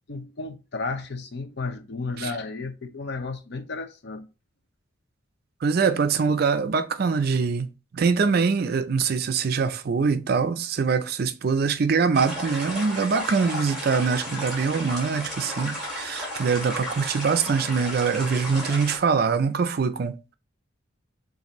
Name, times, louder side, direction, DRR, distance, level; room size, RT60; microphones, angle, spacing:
voice 1, 0.1-4.3, left 3 dB, 55° left, 0.6 m, -33 dB
voice 2, 5.6-7.7 7.9-20.1, right 5 dB, 50° right, 0.4 m, -23 dB
sound 1, 12.1-19.0, equal, ahead, 2.7 m, -34 dB
6.7 x 2.6 x 3.0 m
head